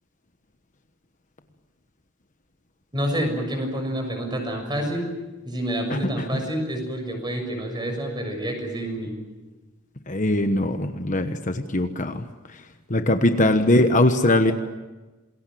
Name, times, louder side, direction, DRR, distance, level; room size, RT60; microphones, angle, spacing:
voice 1, 2.9-5.1 5.4-9.1 14.0-14.2 14.4-14.5, equal, 20° right, 4 dB, 6.7 m, -28 dB
voice 2, 5.9-6.4 10.1-12.2 12.9-14.5, left 1 dB, 40° left, 7 dB, 1.2 m, -21 dB
27.5 x 21.5 x 7.8 m, 1.2 s
head